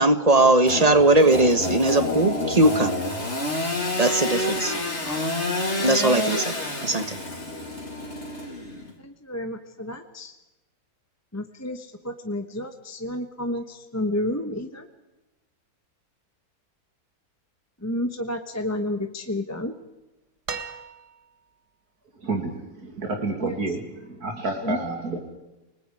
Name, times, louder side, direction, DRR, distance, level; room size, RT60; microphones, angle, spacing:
voice 1, 0.0-2.9 4.0-4.7 5.0-5.3 5.8-6.5 6.8-7.2, right 2 dB, 25° right, 11 dB, 1.4 m, -19 dB
Engine / Sawing, 0.7-8.9, left 1 dB, 45° left, 3.5 m, -28 dB
voice 2, 9.0-10.3 11.3-14.9 17.8-19.7 23.4-23.8 24.6-24.9, left 1 dB, 10° left, 6 dB, 1.1 m, -31 dB
sound 1, 20.5-21.5 23.0-23.1, right 6 dB, 90° right, 2.3 m, -36 dB
voice 3, 22.2-25.2, right 3 dB, 70° right, 3 dB, 2.9 m, -30 dB
30.0 x 20.0 x 4.9 m, 1.0 s
omnidirectional pair, 1.7 m